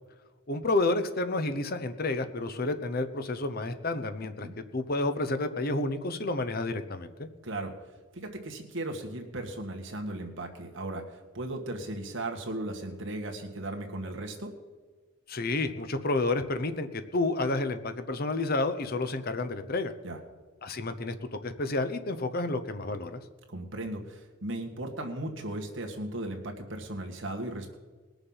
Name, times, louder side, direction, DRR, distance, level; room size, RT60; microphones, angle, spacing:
voice 1, 0.5-4.5 4.7-7.3 15.3-19.9 20.6-21.1 21.4-23.2, left 2 dB, 45° left, 8 dB, 0.8 m, -30 dB
voice 2, 8.1-11.0 11.3-14.5 20.0-20.2 23.5-27.7, right 1 dB, 60° right, 2 dB, 1.8 m, -36 dB
20.5 x 7.0 x 5.6 m, 1.4 s
head